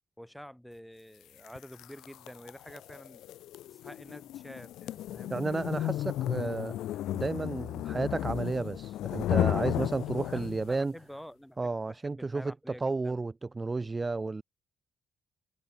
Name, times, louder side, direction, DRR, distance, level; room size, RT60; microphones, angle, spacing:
voice 1, 0.2-3.2 3.7-5.3 10.3-13.2, equal, ahead, 4.6 m, -49 dB
sound 1, 1.4-10.8, left 13 dB, 85° left, 0.7 m, -34 dB
voice 2, 5.3-6.8 7.1-10.9 11.6-14.4, right 3 dB, 25° right, 0.7 m, -32 dB
cardioid pair, 90°, 0 cm